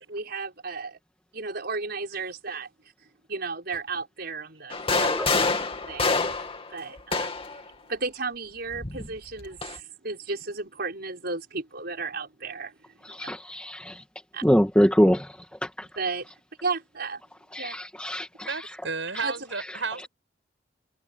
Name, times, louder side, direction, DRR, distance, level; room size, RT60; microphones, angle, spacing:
voice 1, 0.1-1.0 1.3-2.7 3.3-5.4 5.9-6.1 6.7-7.6 7.9-12.7 13.1-13.3 14.3-14.4 16.0-16.3 16.6-17.2 17.6-17.8 19.2-19.3, right 4 dB, 60° right, 5.9 m, -34 dB
sound 1, 4.7-7.6 8.7-9.8, left 3 dB, 30° left, 2.6 m, -27 dB
voice 2, 13.1-14.0 14.4-15.3 15.8-15.9 17.5-18.5, equal, 5° left, 2.1 m, -23 dB
voice 3, 18.5-20.1, right 4 dB, 90° right, 7.6 m, -32 dB
head